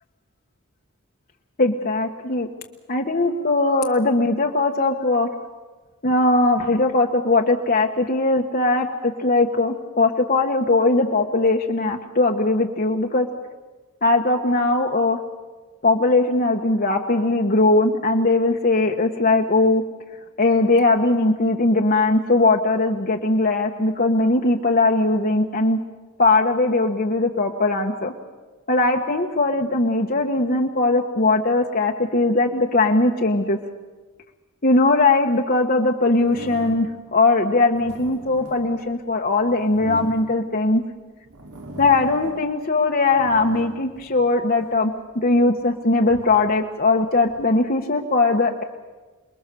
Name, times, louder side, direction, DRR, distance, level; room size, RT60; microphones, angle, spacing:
voice 1, 1.6-2.5 2.9-5.3 6.0-13.3 14.0-15.2 15.8-19.8 20.4-25.8 26.2-28.1 28.7-33.6 34.6-40.8 41.8-48.6, left 2 dB, 40° left, 2 dB, 1.3 m, -20 dB
sound 1, 36.2-37.1 37.6-40.8 41.3-42.6 42.9-44.8 45.4-47.5, right 1 dB, 85° right, 3.1 m, -40 dB
28.0 x 21.5 x 6.9 m, 1.3 s
head